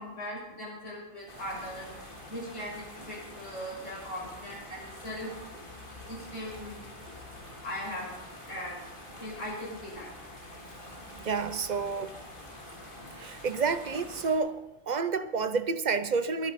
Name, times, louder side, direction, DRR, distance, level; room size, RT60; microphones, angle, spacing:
voice 1, 0.0-1.9 2.3-5.3 6.1-6.8 7.6-8.1 8.4-8.9 9.2-10.1, equal, 65° left, 6.5 m, -39 dB
sound 1, 1.3-14.4, left 1 dB, 40° left, 3.4 m, -46 dB
voice 2, 11.1-12.2 13.2-16.5, right 5 dB, 45° right, 0.6 m, -30 dB
22.5 x 10.5 x 4.2 m
omnidirectional pair, 1.4 m